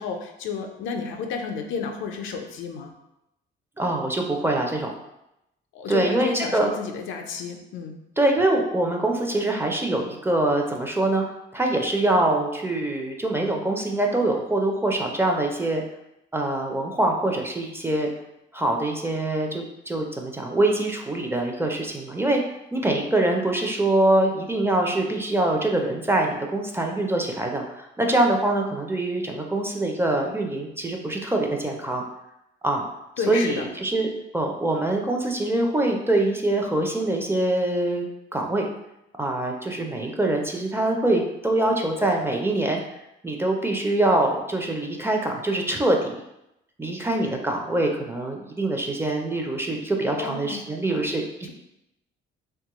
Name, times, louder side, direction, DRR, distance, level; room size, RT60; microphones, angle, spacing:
voice 1, 0.0-2.9 5.7-8.0 33.2-33.7 50.1-50.6 50.9-51.0 51.4-51.5, left 5 dB, 80° left, 4 dB, 0.4 m, -31 dB
voice 2, 3.8-4.9 5.9-6.7 8.2-11.2 11.5-15.8 16.3-18.1 18.5-22.4 22.7-32.0 32.6-32.9 33.3-38.7 39.2-42.8 43.2-46.2 46.8-51.2, right 2 dB, 10° right, 2 dB, 0.4 m, -24 dB
3.0 x 2.3 x 2.9 m, 0.86 s
cardioid pair, 90°, 20 cm